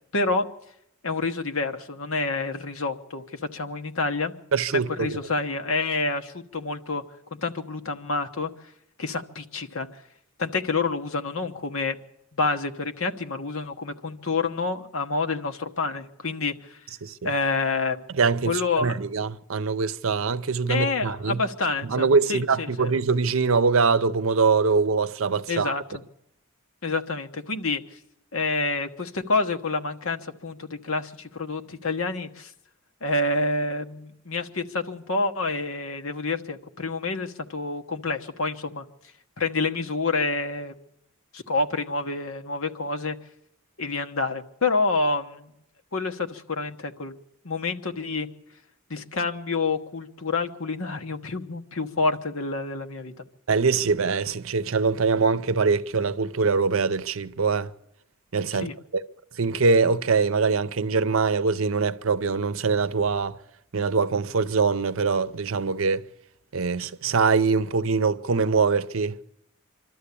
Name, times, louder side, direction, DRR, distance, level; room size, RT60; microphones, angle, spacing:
voice 1, 0.1-0.5 1.0-4.3 4.7-7.0 7.4-8.5 9.0-9.9 10.4-12.0 12.4-16.8 17.2-18.0 18.4-19.0 20.7-22.9 25.5-25.8 26.8-27.8 28.3-32.5 33.0-38.8 39.4-40.7 41.3-43.2 43.8-45.5 45.9-47.1 47.4-48.3 48.9-53.2 58.5-58.7, left 3 dB, 70° left, 1.2 m, -28 dB
voice 2, 4.5-5.2 17.0-17.3 18.2-21.4 21.9-25.8 53.5-57.7 58.3-58.7 59.4-63.4 63.7-66.0 66.5-69.2, right 4 dB, 70° right, 0.7 m, -23 dB
26.0 x 12.5 x 8.4 m
head